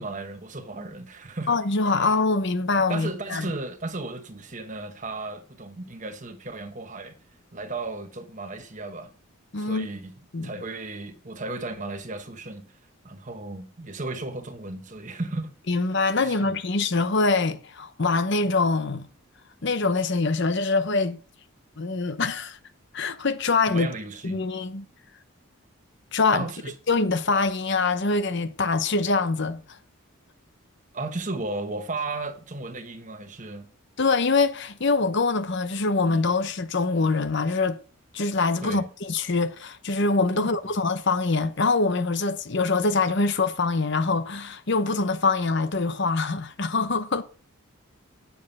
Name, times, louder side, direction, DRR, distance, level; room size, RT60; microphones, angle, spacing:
voice 1, 0.0-1.5 2.9-7.1 7.5-9.1 9.6-10.1 10.4-12.7 13.0-15.5 16.2-16.5 23.7-24.4 26.3-26.7 30.9-33.7 38.6-38.9 40.3-40.7, right 2 dB, 35° right, 1.2 m, -35 dB
voice 2, 1.5-3.5 9.5-9.9 10.3-10.5 15.7-19.1 19.6-21.2 21.8-22.6 22.9-23.9 24.2-24.9 26.1-26.5 26.9-29.6 34.0-37.8 38.1-47.2, left 3 dB, 55° left, 0.8 m, -24 dB
9.7 x 7.1 x 5.4 m
head